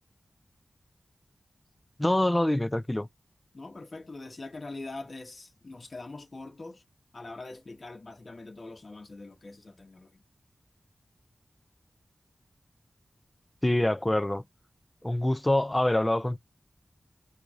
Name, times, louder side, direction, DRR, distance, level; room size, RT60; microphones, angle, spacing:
voice 1, 2.0-3.1 13.6-14.4 15.0-16.4, left 1 dB, 15° left, 0.4 m, -25 dB
voice 2, 3.5-6.8 7.1-10.2, left 2 dB, 50° left, 1.2 m, -43 dB
4.5 x 2.6 x 2.4 m
wide cardioid pair, 90°, 0 cm